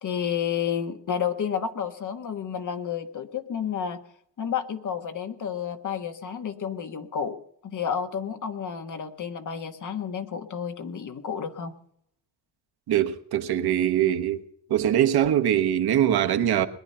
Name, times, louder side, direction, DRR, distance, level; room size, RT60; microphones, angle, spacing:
voice 1, 0.0-4.0 4.4-7.4 7.6-11.7, left 8 dB, 45° left, 1.5 m, -31 dB
voice 2, 12.9-14.4 14.7-16.7, right 11 dB, 65° right, 1.3 m, -22 dB
21.0 x 10.0 x 5.5 m
cardioid pair, 115°, 41 cm